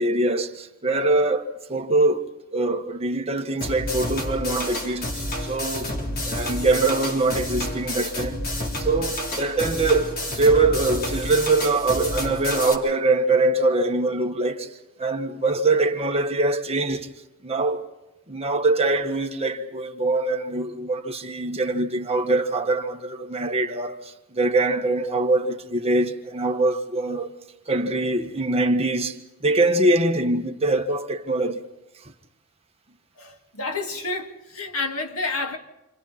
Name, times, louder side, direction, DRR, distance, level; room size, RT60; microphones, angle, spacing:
voice 1, 0.0-5.9 6.2-8.4 8.8-14.7 15.0-17.1 17.4-17.9 18.3-27.3 27.7-31.6, right 2 dB, 30° right, 1.6 m, -23 dB
sound 1, 3.6-12.7, left 1 dB, 45° left, 4.0 m, -29 dB
voice 2, 33.2-35.6, left 3 dB, 75° left, 2.5 m, -29 dB
29.0 x 28.5 x 4.4 m
head